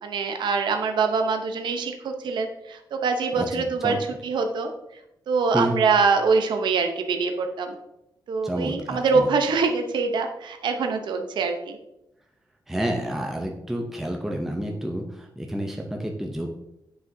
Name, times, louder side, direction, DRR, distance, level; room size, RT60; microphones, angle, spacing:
voice 1, 0.0-4.7 5.3-7.7 8.3-11.8, right 4 dB, 90° right, 5 dB, 0.7 m, -24 dB
voice 2, 3.4-4.0 5.5-5.8 8.4-9.3 12.7-16.5, equal, 5° right, 1 dB, 0.6 m, -29 dB
9.2 x 5.0 x 2.7 m, 0.86 s
wide cardioid pair, 165°, 8 cm